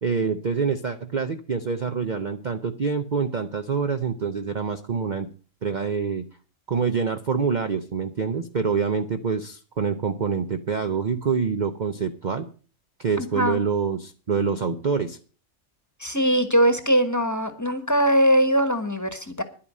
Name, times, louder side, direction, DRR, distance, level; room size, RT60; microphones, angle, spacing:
voice 1, 0.0-5.3 5.6-6.3 6.7-12.5 13.0-15.2, right 5 dB, 45° right, 7 dB, 0.7 m, -26 dB
voice 2, 13.2-13.6 16.0-19.4, equal, 15° left, 10 dB, 1.2 m, -21 dB
11.0 x 8.8 x 7.4 m, 0.40 s
omnidirectional pair, 1.4 m